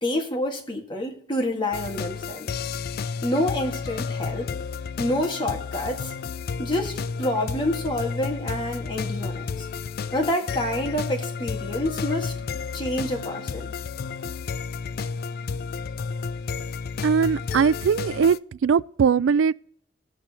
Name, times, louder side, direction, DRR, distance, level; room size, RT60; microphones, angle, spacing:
voice 1, 0.0-2.7 3.2-4.5 5.0-6.1 6.6-9.7 10.1-12.3 12.7-13.7, left 1 dB, 25° left, 1.7 m, -28 dB
sound 1, 1.7-18.4, left 5 dB, 55° left, 0.3 m, -32 dB
voice 2, 17.0-19.5, right 6 dB, 85° right, 0.4 m, -21 dB
19.5 x 6.8 x 2.9 m
head